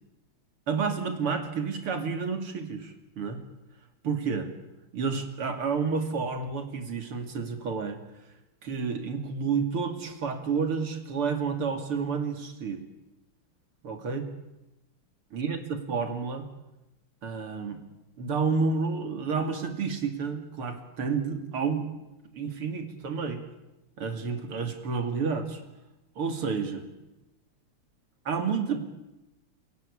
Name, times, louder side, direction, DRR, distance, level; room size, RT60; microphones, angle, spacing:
voice 1, 0.7-3.4 4.0-4.5 4.9-8.0 8.6-12.8 13.8-14.3 15.3-16.5 17.2-17.8 18.2-21.9 22.3-23.4 24.0-25.6 26.2-26.9 28.3-28.8, right 5 dB, 80° right, 6 dB, 3.6 m, -30 dB
28.5 x 18.0 x 8.6 m, 0.98 s
omnidirectional pair, 2.4 m